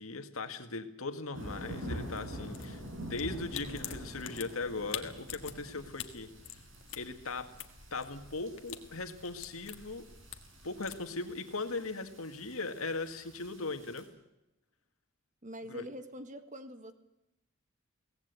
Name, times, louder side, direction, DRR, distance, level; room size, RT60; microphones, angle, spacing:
voice 1, 0.0-6.6 7.0-7.5 7.9-10.1 10.6-14.1 15.7-15.8, left 3 dB, 80° left, 7 dB, 1.9 m, -39 dB
sound 1, 1.3-14.0, equal, 65° right, 5.8 m, -47 dB
sound 2, 2.3-11.0, left 10 dB, 60° left, 1.6 m, -47 dB
voice 2, 15.4-16.9, equal, 35° right, 9 dB, 1.5 m, -44 dB
23.0 x 18.0 x 8.3 m, 0.91 s
head